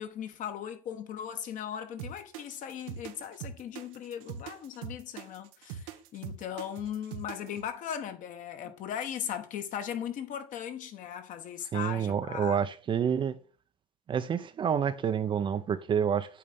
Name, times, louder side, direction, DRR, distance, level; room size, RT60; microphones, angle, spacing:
voice 1, 0.0-12.6, left 9 dB, 50° left, 1.2 m, -38 dB
sound 1, 2.0-7.6, right 8 dB, 90° right, 0.9 m, -42 dB
voice 2, 11.7-13.4 14.1-16.4, right 7 dB, 30° right, 0.5 m, -28 dB
8.5 x 3.2 x 5.3 m
supercardioid pair, 120°, 17 cm